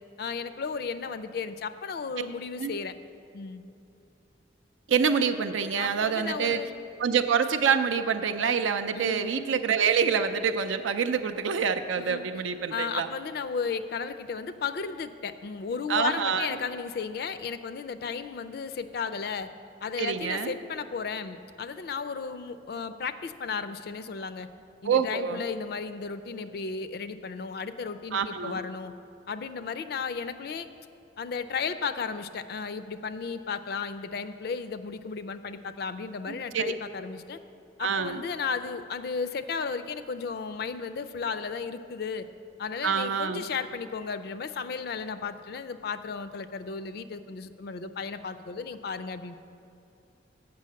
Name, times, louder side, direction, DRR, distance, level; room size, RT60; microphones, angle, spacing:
voice 1, 0.2-2.9 3.3-3.6 5.8-6.7 8.9-9.4 12.0-12.2 12.7-19.5 19.8-24.5 24.8-28.9 29.3-30.7 31.2-37.4 37.8-42.3 42.6-49.3, left 5 dB, 55° left, 11 dB, 0.3 m, -34 dB
voice 2, 4.9-6.6 7.0-13.1 15.9-16.5 20.0-20.5 24.8-25.4 28.1-28.6 36.3-36.7 37.8-38.2 42.8-43.4, right 6 dB, 90° right, 9 dB, 0.5 m, -26 dB
7.6 x 5.8 x 7.4 m, 2.6 s
head